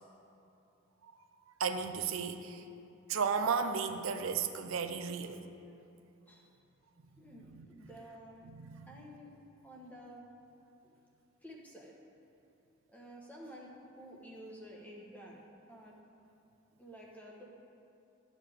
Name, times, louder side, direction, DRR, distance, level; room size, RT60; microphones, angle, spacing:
voice 1, 1.6-2.6 3.1-5.4 7.3-7.7 8.4-8.9, right 6 dB, 80° right, 8 dB, 0.5 m, -34 dB
voice 2, 7.2-8.5 8.9-9.3 9.6-10.3 10.8-10.9 11.4-11.9 12.9-15.4 15.7-16.0 16.8-17.4, equal, 10° left, -3 dB, 1.2 m, -51 dB
12.0 x 7.3 x 3.5 m, 2.7 s
head